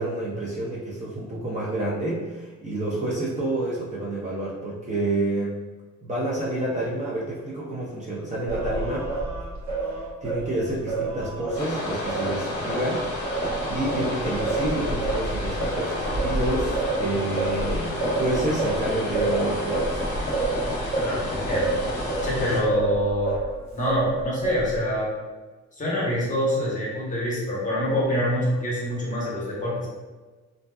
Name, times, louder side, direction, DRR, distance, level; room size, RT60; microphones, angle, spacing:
voice 1, 0.0-5.6 6.0-9.1 10.2-20.0, right 1 dB, 25° right, -6 dB, 0.5 m, -29 dB
Singing, 8.5-12.8 13.2-23.5 23.9-24.9, right 3 dB, 75° right, 0.8 m, -29 dB
sound 1, 11.6-22.6, left 1 dB, 55° left, 0.7 m, -30 dB
voice 2, 21.0-21.7 22.2-23.4 23.7-25.1 25.8-29.9, left 1 dB, 25° left, -5 dB, 0.9 m, -26 dB
2.6 x 2.2 x 2.2 m, 1.3 s
cardioid pair, 90°, 30 cm